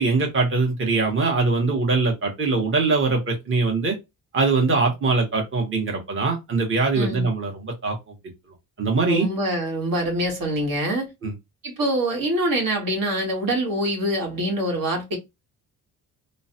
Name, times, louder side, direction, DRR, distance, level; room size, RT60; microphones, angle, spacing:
voice 1, 0.0-4.0 4.3-8.1 8.8-9.3 11.2-11.3, right 3 dB, 35° right, 1.0 m, -22 dB
voice 2, 6.9-7.3 9.0-11.1 11.6-15.2, right 1 dB, 65° right, 1.2 m, -25 dB
3.1 x 2.1 x 2.8 m
cardioid pair, 80°, 37 cm